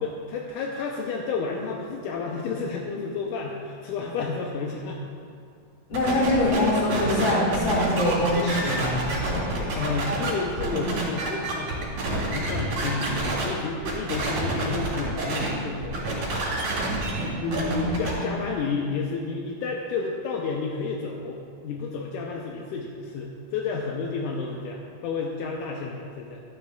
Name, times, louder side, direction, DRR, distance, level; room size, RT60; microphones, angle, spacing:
voice 1, 0.0-5.0 9.8-11.7 12.0-16.0 17.4-26.4, left 4 dB, 80° left, 0 dB, 2.1 m, -31 dB
voice 2, 5.9-9.1 17.4-18.4, left 1 dB, 40° left, -5 dB, 2.3 m, -24 dB
sound 1, 5.9-13.4 13.8-15.5 15.8-18.1, right 2 dB, 60° right, 3.4 m, -28 dB
12.5 x 11.0 x 2.3 m, 2.3 s
omnidirectional pair, 3.8 m